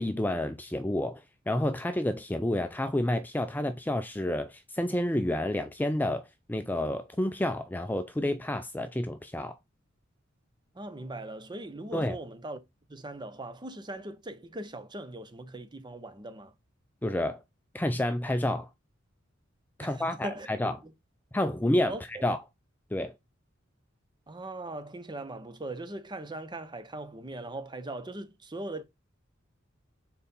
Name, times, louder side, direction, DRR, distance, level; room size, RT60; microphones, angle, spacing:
voice 1, 0.0-9.6 11.9-12.2 17.0-17.4 17.7-18.7 19.8-20.8 21.3-22.0 22.2-22.4 22.9-23.1, left 1 dB, 10° left, 0.4 m, -29 dB
voice 2, 10.7-12.6 12.9-16.5 19.8-20.5 20.8-20.9 21.9-22.2 24.3-28.8, right 2 dB, 20° right, 0.7 m, -40 dB
4.4 x 4.2 x 5.3 m
head